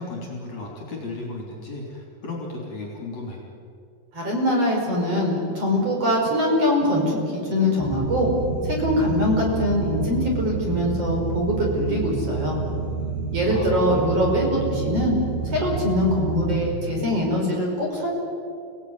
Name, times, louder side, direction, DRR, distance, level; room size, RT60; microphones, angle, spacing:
voice 1, 0.0-3.4 13.4-14.3, left 2 dB, 40° left, -2 dB, 4.5 m, -34 dB
voice 2, 4.1-8.3 8.6-12.6 13.3-15.2 15.4-18.1, left 1 dB, 35° right, -1 dB, 6.1 m, -23 dB
sound 1, 7.8-16.7, right 4 dB, 75° right, 5.0 m, -29 dB
30.0 x 18.0 x 9.7 m, 2.5 s
omnidirectional pair, 5.2 m